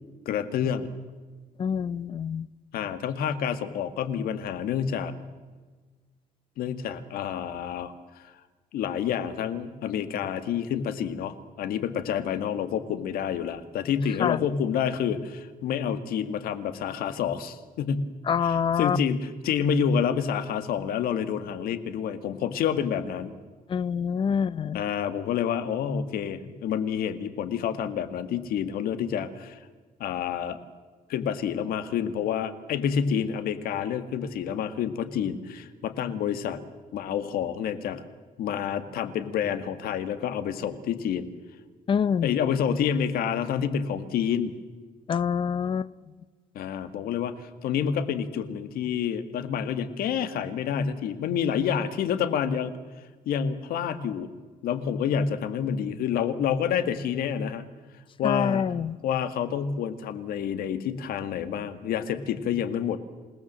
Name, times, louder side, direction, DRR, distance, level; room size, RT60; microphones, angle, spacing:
voice 1, 0.3-0.9 2.7-5.1 6.6-8.3 8.7-18.1 18.4-23.3 24.7-29.6 30.0-30.6 31.1-36.6 36.9-38.1 38.4-41.3 42.2-44.5 46.5-52.7 53.3-54.3 54.6-57.6 58.2-58.6 59.0-63.0, left 8 dB, 85° left, 11 dB, 1.9 m, -28 dB
voice 2, 1.6-2.5 14.2-14.4 18.3-19.0 23.7-24.8 41.9-42.3 45.1-45.9 58.2-59.0, left 7 dB, 35° left, 19 dB, 0.6 m, -26 dB
28.0 x 18.5 x 7.5 m, 1.4 s
cardioid pair, 150°, 15 cm